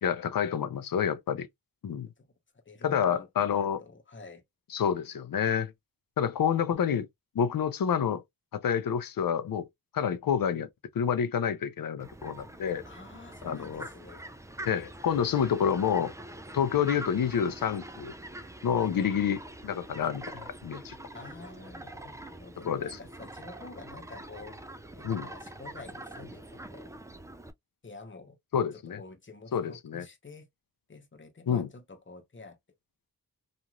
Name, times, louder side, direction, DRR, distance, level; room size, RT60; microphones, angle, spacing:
voice 1, 0.0-1.5 1.8-2.1 2.8-3.8 4.7-5.7 6.2-7.1 7.3-8.2 8.5-9.7 9.9-10.7 10.9-12.8 13.4-13.8 14.7-16.1 16.5-18.1 18.6-20.9 22.6-23.0 25.0-25.3 28.5-29.0 29.5-30.0 31.5-31.7, left 8 dB, 70° left, 0.5 m, -28 dB
voice 2, 2.6-4.4 12.9-14.3 18.7-19.1 21.1-24.6 24.9-26.9 27.8-28.4 28.7-30.5 30.9-32.6, left 3 dB, 35° left, 0.9 m, -48 dB
Fowl, 12.0-27.5, right 1 dB, 10° right, 0.3 m, -45 dB
3.0 x 2.5 x 2.3 m
wide cardioid pair, 60°, 36 cm